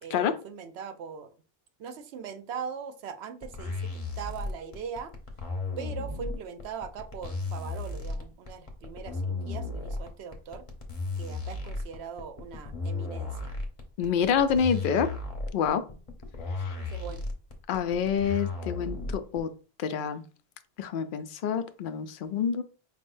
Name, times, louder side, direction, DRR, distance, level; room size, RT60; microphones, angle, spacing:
voice 1, 0.0-1.3 1.8-5.1 5.8-10.7 11.2-13.6 16.7-17.2, right 6 dB, 85° right, 9 dB, 0.9 m, -40 dB
sound 1, 3.4-19.4, left 3 dB, 35° left, 0.9 m, -34 dB
voice 2, 14.0-15.1 15.5-15.8 16.6-16.8 17.7-19.5 19.8-20.2 20.8-22.6, left 7 dB, 60° left, 10 dB, 0.7 m, -27 dB
5.0 x 3.6 x 2.5 m, 0.37 s
omnidirectional pair, 1.1 m